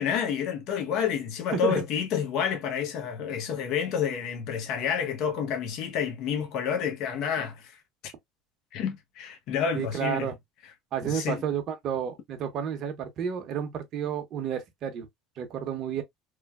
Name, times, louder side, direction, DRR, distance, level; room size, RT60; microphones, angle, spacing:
voice 1, 0.0-8.1 8.7-10.3 11.0-11.4, left 8 dB, 60° left, 0.8 m, -29 dB
voice 2, 9.7-10.4 10.9-15.1 15.4-16.0, right 8 dB, 50° right, 0.8 m, -31 dB
3.2 x 2.2 x 2.2 m
supercardioid pair, 110°, 0 cm